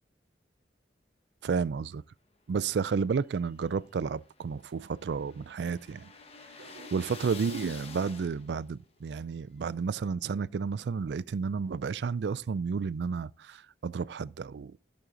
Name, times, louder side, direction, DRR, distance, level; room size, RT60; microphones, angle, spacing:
voice 1, 1.4-2.0 2.5-6.1 6.6-14.8, right 5 dB, 75° right, 0.4 m, -32 dB
sound 1, 3.2-8.7, left 4 dB, 35° left, 0.9 m, -48 dB
13.5 x 6.4 x 3.8 m
head